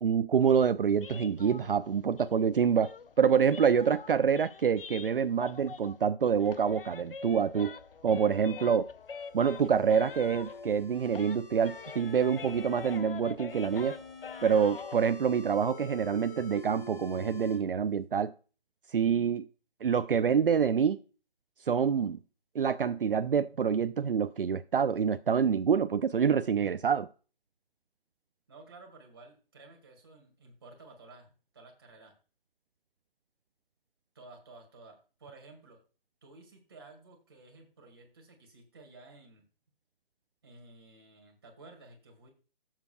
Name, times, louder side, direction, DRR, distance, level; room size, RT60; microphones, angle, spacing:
voice 1, 0.0-7.8 8.0-8.9 9.3-14.0 14.4-18.3 18.9-19.5 19.8-21.0 21.7-22.2 22.5-27.1, right 7 dB, 70° right, 0.5 m, -26 dB
sound 1, 1.0-6.1 6.3-10.8 11.1-15.0, left 6 dB, 70° left, 0.7 m, -45 dB
sound 2, 9.0-13.0 13.5-17.6, left 3 dB, 15° left, 3.6 m, -48 dB
voice 2, 28.5-32.1 34.1-35.8 36.2-39.4 40.4-42.3, right 3 dB, 25° right, 2.1 m, -53 dB
14.0 x 7.4 x 2.3 m
hypercardioid pair, 180°, 29 cm